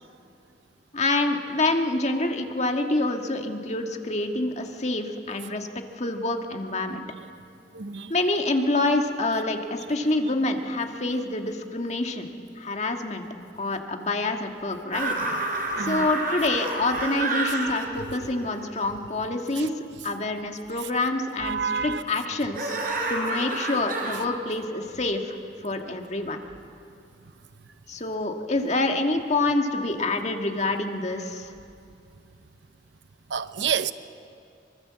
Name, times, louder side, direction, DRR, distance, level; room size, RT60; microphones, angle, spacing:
voice 1, 0.9-5.7 6.0-7.0 8.1-12.3 12.6-13.2 13.6-15.1 15.8-26.4 27.9-31.5, left 2 dB, 40° left, 1.8 m, -27 dB
voice 2, 7.7-8.1 15.2-15.4 15.7-16.1 17.5-17.6 19.6-19.7 21.4-22.0 33.3-33.9, right 6 dB, 85° right, 0.8 m, -29 dB
sound 1, 14.9-19.2 22.5-24.2, right 2 dB, 50° right, 4.6 m, -29 dB
24.0 x 23.0 x 7.5 m
head